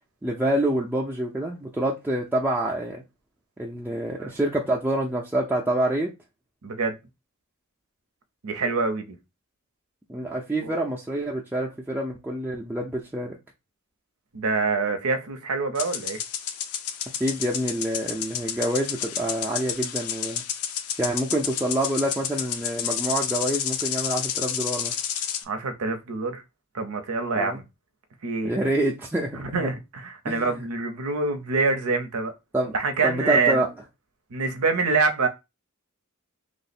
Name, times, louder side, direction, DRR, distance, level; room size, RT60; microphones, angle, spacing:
voice 1, 0.2-3.0 3.6-6.1 10.1-13.3 17.2-20.4 21.0-24.9 27.3-27.6 28.4-29.7 30.3-30.7 32.5-32.7 33.0-33.7, right 1 dB, 10° right, 0.4 m, -27 dB
voice 2, 6.6-7.0 8.4-9.2 10.6-10.7 14.3-16.2 25.5-26.4 26.7-27.6 28.2-28.5 29.3-32.3 32.7-33.6 34.3-35.3, right 4 dB, 85° right, 0.7 m, -25 dB
sound 1, 15.7-25.4, left 9 dB, 85° left, 0.5 m, -30 dB
3.1 x 2.0 x 4.1 m
head